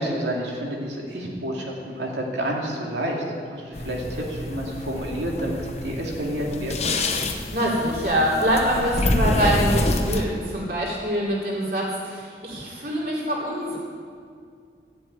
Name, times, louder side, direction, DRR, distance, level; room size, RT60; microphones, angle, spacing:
voice 1, 0.0-6.9, equal, 85° right, -2 dB, 2.7 m, -29 dB
sound 1, 3.7-10.2, left 1 dB, 35° left, 1.0 m, -27 dB
voice 2, 7.5-13.8, equal, 55° right, -5 dB, 3.8 m, -24 dB
13.5 x 7.6 x 9.2 m, 2.2 s
head